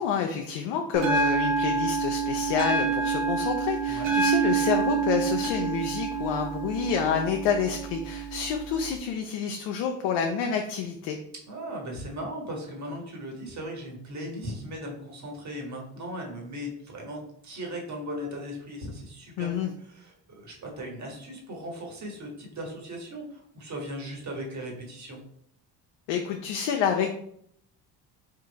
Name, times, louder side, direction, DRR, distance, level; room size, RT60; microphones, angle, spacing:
voice 1, 0.0-11.2 19.4-19.7 26.1-27.1, left 7 dB, 80° left, 3 dB, 0.6 m, -28 dB
Bell, 0.9-8.9, right 5 dB, 80° right, 1.0 m, -27 dB
voice 2, 3.9-4.2 11.5-25.2, equal, 40° right, 0 dB, 1.5 m, -38 dB
3.7 x 2.5 x 4.0 m, 0.68 s
supercardioid pair, 70°, 42 cm